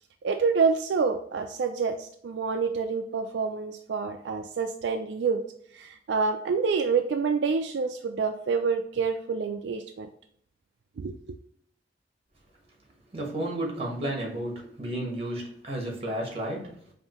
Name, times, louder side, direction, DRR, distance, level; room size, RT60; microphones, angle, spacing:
voice 1, 0.2-5.4 5.7-10.1 11.0-11.4, right 5 dB, 75° right, 5 dB, 0.4 m, -27 dB
voice 2, 13.1-16.8, right 1 dB, 35° right, 0 dB, 1.3 m, -32 dB
5.4 x 2.6 x 2.9 m, 0.66 s
head